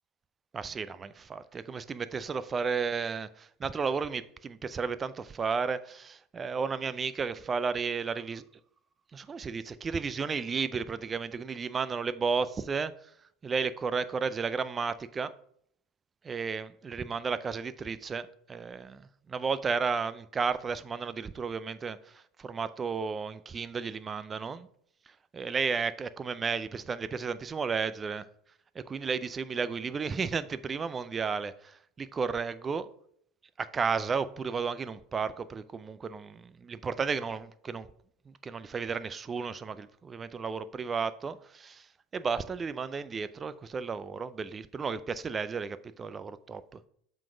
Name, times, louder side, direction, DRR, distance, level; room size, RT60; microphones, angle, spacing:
voice 1, 0.5-8.4 9.1-12.9 13.4-15.3 16.2-22.0 22.4-24.7 25.3-28.3 28.8-32.9 33.6-37.9 38.4-41.8 42.1-46.6, right 5 dB, 25° right, 0.4 m, -33 dB
7.5 x 3.9 x 5.0 m
supercardioid pair, 120°, 0 cm